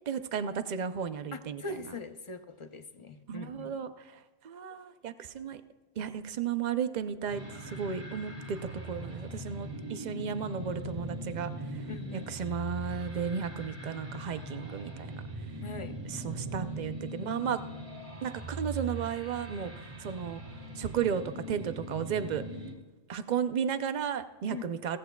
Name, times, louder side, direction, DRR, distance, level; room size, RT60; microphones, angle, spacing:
voice 1, 0.1-1.6 3.3-3.9 4.4-5.6 6.0-8.6 8.9-11.5 12.1-15.2 16.1-17.6 18.2-19.7 20.0-20.4 20.8-21.2 21.5-22.4 23.1-25.0, right 7 dB, 50° right, 11 dB, 0.7 m, -34 dB
voice 2, 1.3-3.8 10.3-10.4 11.9-12.3 15.6-15.9 24.5-24.7, left 3 dB, 35° left, 8 dB, 0.6 m, -42 dB
sound 1, 7.3-22.7, right 2 dB, 30° right, 1.5 m, -40 dB
16.5 x 15.0 x 2.3 m, 1.2 s
omnidirectional pair, 1.1 m